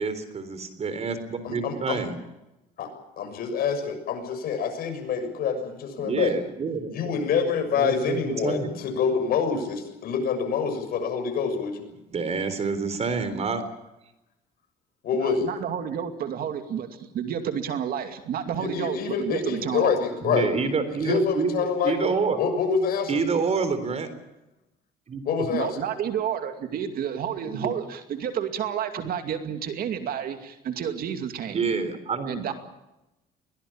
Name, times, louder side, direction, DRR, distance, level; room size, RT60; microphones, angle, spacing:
voice 1, 0.0-2.2 6.0-7.1 7.7-8.8 12.1-13.6 20.2-22.4 23.1-24.1 25.1-25.5 27.5-27.7 31.5-32.5, right 5 dB, 40° right, 11 dB, 3.9 m, -28 dB
voice 2, 1.4-2.0 2.8-2.9 3.2-6.3 6.9-11.8 15.0-15.5 18.6-20.5 21.0-22.1 22.4-23.2 25.2-25.8, left 6 dB, 65° left, 5 dB, 6.8 m, -26 dB
voice 3, 15.2-19.9 25.5-31.6 32.3-32.5, right 8 dB, 60° right, 7 dB, 2.5 m, -30 dB
22.5 x 18.0 x 8.8 m, 0.95 s
cardioid pair, 110°, 17 cm